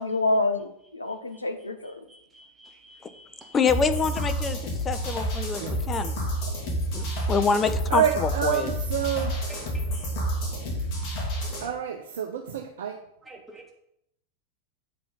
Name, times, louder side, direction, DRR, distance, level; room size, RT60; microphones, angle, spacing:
voice 1, 0.0-2.0, left 2 dB, 80° left, 7 dB, 0.7 m, -27 dB
voice 2, 1.1-1.4 1.8-3.8 6.5-7.5 9.5-9.6 9.9-10.1 10.7-10.9 13.2-13.7, right 1 dB, 10° right, 1 dB, 0.9 m, -51 dB
voice 3, 3.5-6.1 6.9-8.7, left 5 dB, 20° left, 10 dB, 0.6 m, -26 dB
sound 1, 3.7-11.7, right 1 dB, 40° left, 2.5 m, -29 dB
voice 4, 7.9-9.5 11.6-13.0, right 8 dB, 60° right, 3 dB, 0.7 m, -28 dB
7.7 x 4.9 x 5.5 m, 0.76 s
figure-of-eight pair, 90°, 0 cm